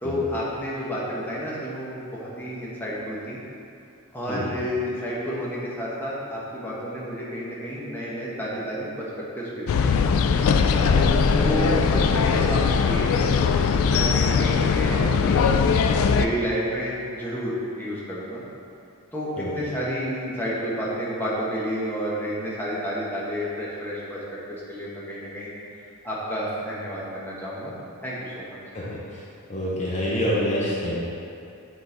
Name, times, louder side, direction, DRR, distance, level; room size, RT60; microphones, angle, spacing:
voice 1, 0.0-3.4 4.1-9.1 9.3-9.9 11.2-13.3 13.8-15.6 16.1-18.4 19.1-24.4 24.7-25.5 26.0-27.7 28.0-28.6, equal, 10° left, -7 dB, 1.0 m, -30 dB
sound 1, 9.7-16.3, left 5 dB, 65° left, 0.3 m, -20 dB
voice 2, 10.7-11.3 13.9-14.1 19.4-19.5 28.7-29.2 29.5-30.9, equal, 30° left, -7 dB, 0.9 m, -27 dB
8.3 x 3.9 x 3.9 m, 2.6 s
head